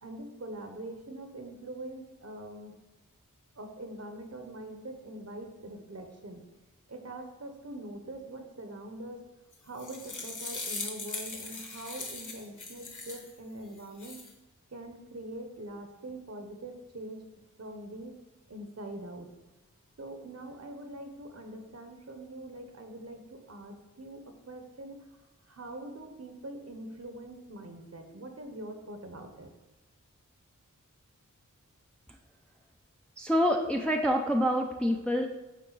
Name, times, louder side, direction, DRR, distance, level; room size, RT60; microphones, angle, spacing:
voice 1, 0.0-2.7 3.5-6.4 6.9-9.2 9.6-14.2 14.7-17.3 17.6-18.1 18.5-19.3 20.0-25.2 25.4-29.5, right 1 dB, 50° right, 5 dB, 0.9 m, -43 dB
sound 1, 9.5-13.3 13.8-14.3, left 3 dB, 65° left, 1.0 m, -40 dB
voice 2, 33.2-35.3, equal, 5° left, 1 dB, 0.5 m, -26 dB
8.3 x 3.8 x 3.9 m, 1.1 s
wide cardioid pair, 45°, 32 cm